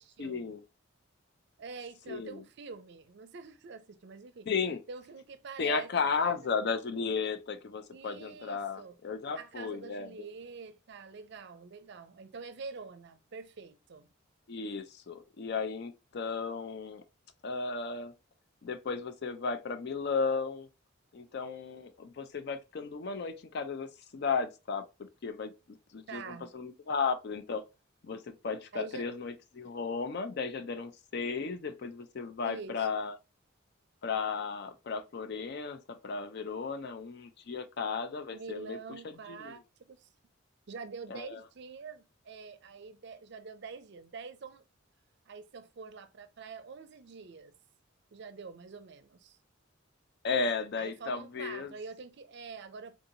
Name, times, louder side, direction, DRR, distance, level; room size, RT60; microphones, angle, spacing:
voice 1, 0.2-0.6 2.1-2.4 4.5-4.8 5.6-10.1 14.5-17.0 17.4-18.1 18.6-20.7 21.1-24.8 25.2-25.5 25.9-27.6 28.0-33.2 34.0-38.8 39.0-39.5 41.1-41.4 50.2-51.7, left 5 dB, 55° left, 0.4 m, -34 dB
voice 2, 1.6-4.5 4.9-5.9 6.2-6.3 7.9-9.0 9.3-14.1 26.1-26.5 28.7-29.1 32.4-32.9 38.3-40.1 40.7-44.6 45.3-47.5 48.1-49.4 50.8-53.0, right 5 dB, 55° right, 0.5 m, -45 dB
3.6 x 2.6 x 2.7 m
head